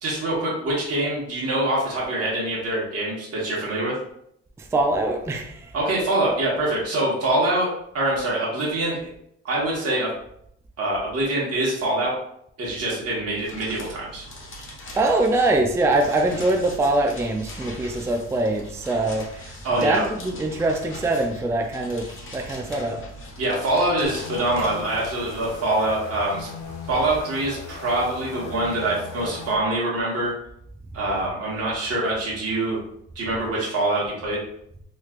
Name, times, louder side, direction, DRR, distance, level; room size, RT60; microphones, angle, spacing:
voice 1, 0.0-3.9 5.7-9.1 9.4-10.1 10.8-12.2 12.6-14.3 19.6-20.1 23.4-26.5 26.9-30.3 30.9-32.8 33.1-34.4, right 1 dB, 55° right, -5 dB, 1.4 m, -24 dB
voice 2, 4.7-5.5 15.0-19.2 19.8-22.1 22.3-23.0, right 2 dB, 10° right, 3 dB, 0.4 m, -23 dB
sound 1, 13.4-25.6, left 1 dB, 40° left, 1.1 m, -41 dB
sound 2, 24.0-29.6, left 4 dB, 65° left, 0.8 m, -38 dB
3.1 x 3.1 x 2.4 m, 0.71 s
cardioid pair, 90°, 30 cm